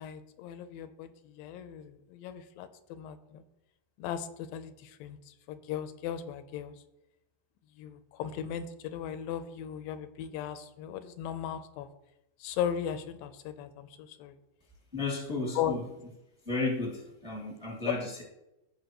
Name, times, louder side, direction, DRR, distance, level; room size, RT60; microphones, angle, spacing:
voice 1, 0.0-3.4 4.0-6.7 7.8-11.9 12.4-14.4 15.6-15.8 17.9-18.0, left 9 dB, 85° left, 11 dB, 2.3 m, -37 dB
voice 2, 14.9-15.8 16.4-18.2, left 3 dB, 15° right, -2 dB, 1.1 m, -33 dB
15.0 x 5.6 x 3.0 m, 0.90 s
omnidirectional pair, 4.0 m